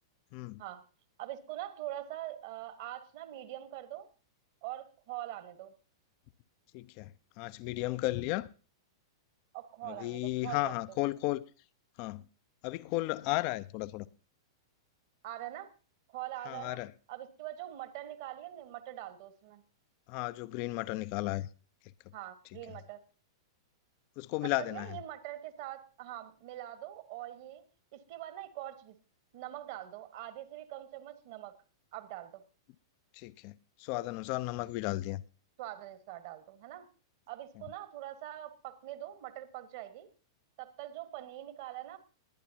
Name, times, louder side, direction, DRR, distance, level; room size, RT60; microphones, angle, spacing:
voice 1, 1.2-4.1 4.6-5.7 9.5-10.8 15.2-15.7 16.1-16.8 17.1-19.6 22.1-23.0 24.4-27.6 27.9-28.9 29.3-31.5 31.9-32.4 35.6-36.9 37.3-40.1 40.6-42.0, right 14 dB, 50° right, 1.4 m, -43 dB
voice 2, 6.7-7.1 7.4-8.5 9.9-11.4 12.0-12.2 12.6-14.1 16.5-16.9 20.1-21.5 24.2-25.0 33.1-33.5 33.8-35.2, left 19 dB, 40° left, 0.5 m, -34 dB
21.0 x 10.0 x 2.8 m
figure-of-eight pair, 100°, 2 cm